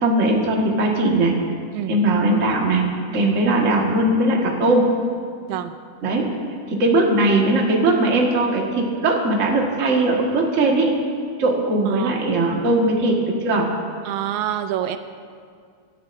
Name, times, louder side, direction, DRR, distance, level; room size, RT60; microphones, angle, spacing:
voice 1, 0.0-1.3 1.9-2.8 3.1-4.9 6.0-6.3 6.7-10.9 11.4-13.2 13.4-13.7, right 2 dB, 35° right, -1 dB, 1.4 m, -19 dB
voice 2, 14.1-15.0, right 11 dB, 80° right, 9 dB, 1.9 m, -27 dB
25.0 x 12.0 x 2.6 m, 2.1 s
omnidirectional pair, 3.4 m